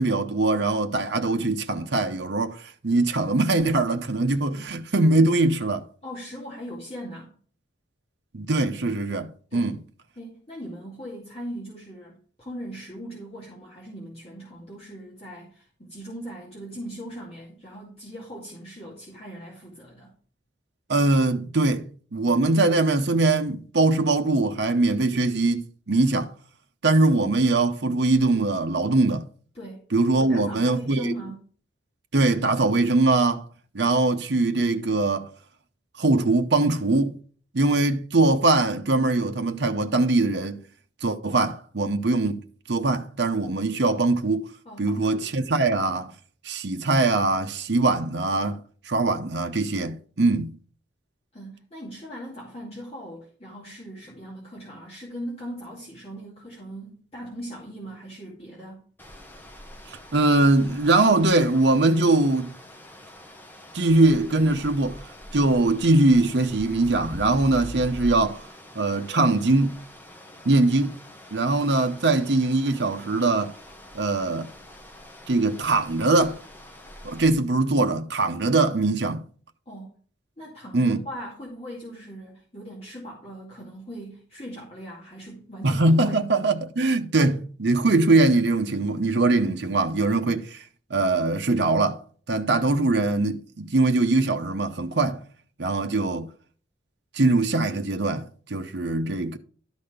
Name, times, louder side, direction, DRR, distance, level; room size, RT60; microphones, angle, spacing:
voice 1, 0.0-5.9 8.3-9.8 20.9-26.3 26.8-29.3 29.9-31.1 32.1-33.5 33.7-35.3 36.0-37.2 37.5-40.6 41.0-42.4 42.7-44.5 44.8-46.1 46.4-48.6 48.9-50.5 59.9-62.5 63.7-65.0 65.3-68.4 68.8-69.8 70.4-71.0 71.3-73.5 73.9-74.5 75.3-76.4 77.0-79.2 80.7-81.0 85.6-90.6 90.9-92.0 92.3-95.2 95.6-96.3 97.1-99.4, right 2 dB, 60° right, 0.7 m, -22 dB
voice 2, 6.0-7.3 9.5-9.7 10.2-20.1 29.5-29.8 30.1-31.4 44.6-45.3 51.3-58.8 79.7-79.9 80.4-86.2, equal, 30° left, 2.4 m, -39 dB
sound 1, 59.0-77.3, equal, 10° left, 1.1 m, -44 dB
12.0 x 4.2 x 5.0 m
head